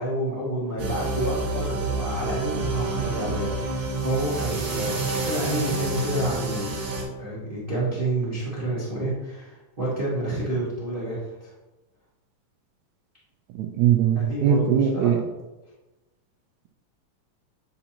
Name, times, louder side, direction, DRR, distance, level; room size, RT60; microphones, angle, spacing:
voice 1, 0.0-6.7 7.2-11.5 14.1-15.1, right 1 dB, 30° right, -8 dB, 1.1 m, -29 dB
sound 1, 0.8-7.0, right 3 dB, 45° right, 2.1 m, -28 dB
voice 2, 13.8-15.2, right 9 dB, 80° right, 5 dB, 1.8 m, -20 dB
9.2 x 4.3 x 2.8 m, 1.1 s
omnidirectional pair, 3.5 m